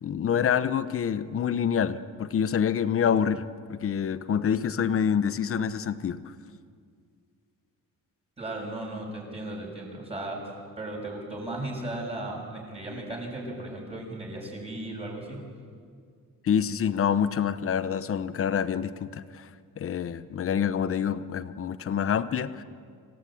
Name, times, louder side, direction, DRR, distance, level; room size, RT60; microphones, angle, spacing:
voice 1, 0.0-6.3 16.4-19.5 19.8-22.6, left 8 dB, 45° left, 13 dB, 0.9 m, -27 dB
voice 2, 8.4-15.4, right 1 dB, 20° right, -2 dB, 6.2 m, -36 dB
26.5 x 17.5 x 8.8 m, 2.1 s
cardioid pair, 155°, 33 cm